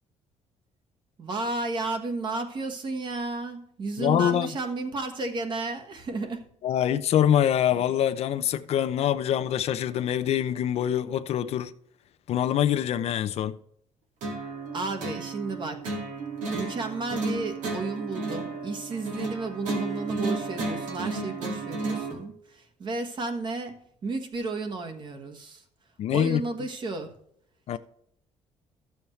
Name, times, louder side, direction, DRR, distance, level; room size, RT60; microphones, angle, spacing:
voice 1, 1.2-6.4 14.7-15.8 16.5-23.8 24.0-25.6 26.1-27.2, right 3 dB, 40° right, 1.4 m, -33 dB
voice 2, 4.0-4.5 6.6-11.7 12.3-13.6 26.0-26.4 27.7-27.8, left 10 dB, 55° left, 0.5 m, -24 dB
sound 1, 14.2-22.2, right 3 dB, 90° right, 2.2 m, -33 dB
13.5 x 7.1 x 3.2 m
cardioid pair, 155°, 12 cm